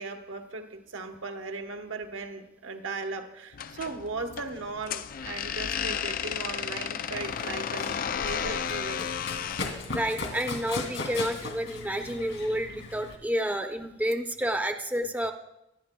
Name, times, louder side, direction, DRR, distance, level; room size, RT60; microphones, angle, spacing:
voice 1, 0.0-9.1, right 3 dB, 75° right, 6 dB, 1.1 m, -37 dB
sound 1, 3.5-9.7, left 8 dB, 45° left, 0.3 m, -33 dB
Run, 7.1-13.2, left 3 dB, 80° left, 2.4 m, -37 dB
voice 2, 9.9-15.3, equal, 10° right, 5 dB, 0.6 m, -30 dB
24.0 x 11.0 x 2.2 m, 0.89 s
head